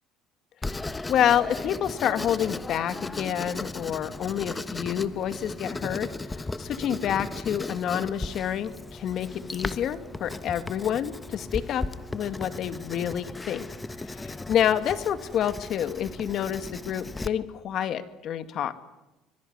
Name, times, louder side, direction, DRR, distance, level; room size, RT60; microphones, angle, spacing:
Writing, 0.6-17.3, left 2 dB, 15° left, 1.2 m, -36 dB
voice 1, 1.1-11.9 12.1-13.7 14.1-18.7, left 9 dB, 50° left, 11 dB, 2.2 m, -28 dB
25.5 x 22.5 x 9.6 m, 0.98 s
cardioid pair, 125°, 0 cm